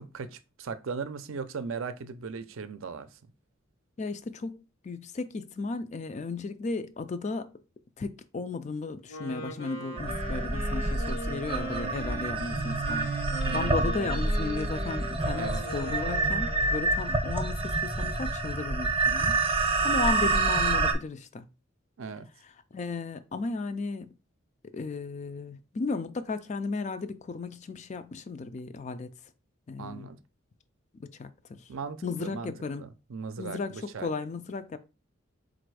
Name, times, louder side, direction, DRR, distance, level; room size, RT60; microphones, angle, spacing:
voice 1, 0.0-3.1 13.5-13.8 15.4-15.6 22.0-22.3 29.8-30.2 31.7-34.1, right 5 dB, 75° right, 0.5 m, -38 dB
voice 2, 4.0-7.5 8.0-13.1 13.5-19.4 19.8-21.5 22.7-24.1 24.7-29.1 29.7-30.1 31.0-31.6 32.0-32.8 33.4-34.8, left 3 dB, 35° left, 0.3 m, -35 dB
Wind instrument woodwind instrument, 9.1-17.0, right 1 dB, 70° left, 1.1 m, -40 dB
sound 1, 10.0-20.9, right 3 dB, 25° right, 0.6 m, -28 dB
4.1 x 2.5 x 4.6 m
head